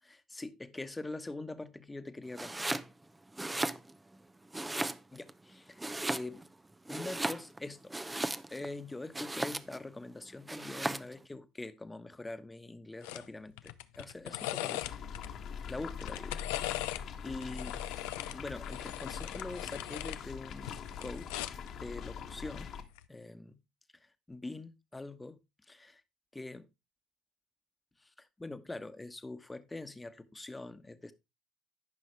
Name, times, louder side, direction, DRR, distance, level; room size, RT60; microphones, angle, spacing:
voice 1, 0.1-2.5 5.1-5.8 6.1-6.4 6.9-7.9 8.5-14.9 15.7-16.4 17.2-17.8 18.3-21.4 21.7-22.7 23.1-23.6 24.3-25.4 25.7-26.0 26.3-26.7 28.0-31.1, left 2 dB, 15° left, 1.2 m, -44 dB
Domestic sounds home sounds, 2.3-2.9 3.3-4.2 4.5-5.3 5.8-6.5 6.9-8.7 9.1-9.9 10.5-11.1, right 2 dB, 15° right, 0.7 m, -36 dB
sound 1, 13.0-13.3 13.6-15.3 15.9-17.0 17.4-20.2 20.6-21.7 22.8-23.1, left 16 dB, 80° left, 0.6 m, -39 dB
sound 2, 14.8-22.8, left 7 dB, 55° left, 1.7 m, -43 dB
14.0 x 5.5 x 3.3 m
supercardioid pair, 75°, 0 cm